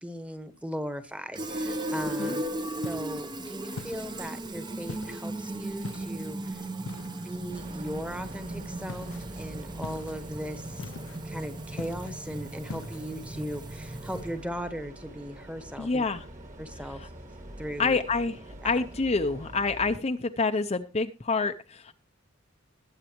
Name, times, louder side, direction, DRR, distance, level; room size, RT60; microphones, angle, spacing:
voice 1, 0.0-2.4 2.8-6.6 7.2-16.0 16.6-17.1 17.6-18.0 18.6-18.7, equal, 5° right, 9 dB, 1.2 m, -38 dB
Fill (with liquid), 1.3-14.5, right 1 dB, 20° right, 0.8 m, -37 dB
sound 1, 2.8-3.2 3.8-4.3 4.9-5.3 5.8-6.3 6.9-7.4 8.9-9.2 9.8-10.2 10.8-11.3 11.8-12.2 12.7-13.0, left 4 dB, 70° left, 0.5 m, -41 dB
sound 2, 7.5-20.0, right 1 dB, 35° right, 1.9 m, -45 dB
voice 2, 15.8-16.2 17.8-18.4 18.6-21.9, left 4 dB, 30° left, 6 dB, 0.6 m, -27 dB
21.5 x 8.2 x 2.9 m, 0.31 s
head